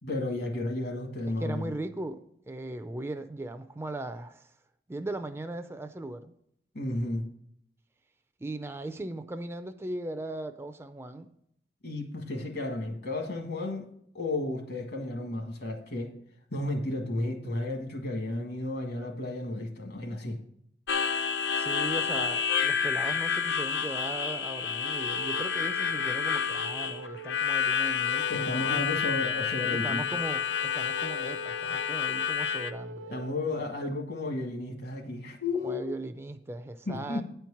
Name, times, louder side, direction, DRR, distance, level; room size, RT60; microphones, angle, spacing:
voice 1, 0.0-1.7 6.7-7.2 11.8-13.9 14.1-16.1 16.5-20.4 28.3-30.1 33.1-35.9 36.9-37.2, left 2 dB, 65° left, 1.5 m, -33 dB
voice 2, 1.3-4.5 4.9-6.3 8.4-11.3 21.5-28.9 29.7-33.2 35.6-37.2, right 2 dB, 15° right, 0.4 m, -38 dB
Harmonica, 20.9-32.7, left 7 dB, 80° left, 0.5 m, -29 dB
Wind instrument woodwind instrument, 24.9-33.4, right 2 dB, 90° right, 0.4 m, -44 dB
9.4 x 4.5 x 7.1 m
head